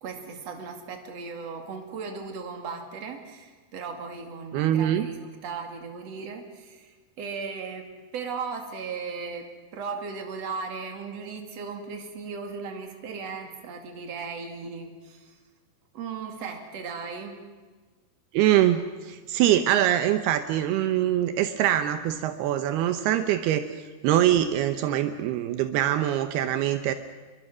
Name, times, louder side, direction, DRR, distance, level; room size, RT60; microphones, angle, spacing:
voice 1, 0.0-7.9 8.1-15.4 15.9-17.4, right 5 dB, 45° right, 4 dB, 3.3 m, -37 dB
voice 2, 4.5-5.1 18.3-23.7 24.0-26.9, right 12 dB, 80° right, 9 dB, 2.8 m, -23 dB
28.5 x 22.5 x 6.3 m, 1.4 s
omnidirectional pair, 4.6 m